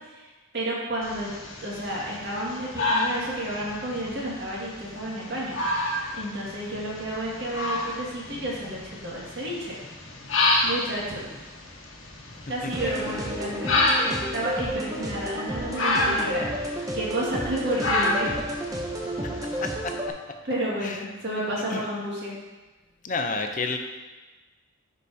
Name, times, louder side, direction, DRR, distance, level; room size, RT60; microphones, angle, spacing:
voice 1, 0.5-1.3 1.6-5.6 6.1-9.7 10.6-11.3 12.5-13.7 14.0-18.4 20.4-22.3, right 1 dB, 55° right, -5 dB, 2.0 m, -31 dB
sound 1, 1.0-19.7, left 2 dB, 75° left, 1.1 m, -29 dB
sound 2, 12.7-20.1, equal, 15° right, 0.6 m, -32 dB
voice 2, 19.6-20.2 20.8-21.0 21.7-21.8 23.0-23.8, left 4 dB, 40° left, 5 dB, 0.6 m, -30 dB
10.0 x 4.9 x 2.8 m, 1.2 s
head